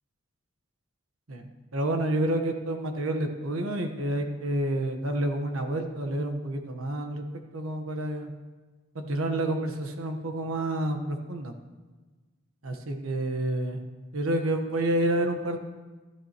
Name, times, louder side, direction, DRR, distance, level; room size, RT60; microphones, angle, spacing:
voice 1, 1.3-7.2 7.5-8.3 8.9-11.5 12.6-13.8 14.1-15.6, right 1 dB, 85° right, 5 dB, 1.2 m, -29 dB
13.0 x 12.0 x 3.0 m, 1.3 s
head